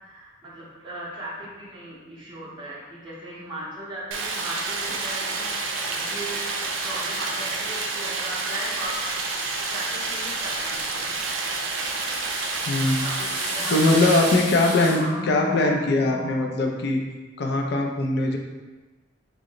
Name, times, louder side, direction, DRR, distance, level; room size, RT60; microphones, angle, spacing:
voice 1, 0.0-9.0 9.7-10.8 12.8-16.6, right 1 dB, 25° right, -8 dB, 0.6 m, -37 dB
Stream, 4.1-14.3, right 3 dB, 85° right, 0.4 m, -29 dB
sound 1, 8.9-15.0, left 1 dB, 35° left, 1.0 m, -36 dB
voice 2, 12.7-13.1 13.7-17.0 17.4-18.4, left 2 dB, 60° left, 2 dB, 0.4 m, -21 dB
3.0 x 2.0 x 3.7 m, 1.2 s
head